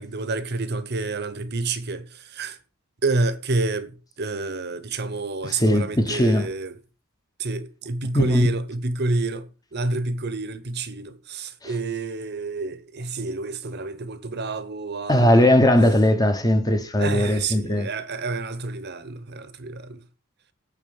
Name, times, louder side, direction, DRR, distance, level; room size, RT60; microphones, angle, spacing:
voice 1, 0.0-2.6 3.0-3.9 4.2-6.8 7.4-15.6 17.0-20.0, right 2 dB, 50° right, 0.9 m, -28 dB
voice 2, 5.5-6.5 8.1-8.5 15.1-17.9, left 1 dB, 15° left, 1.0 m, -19 dB
8.7 x 4.1 x 7.1 m
head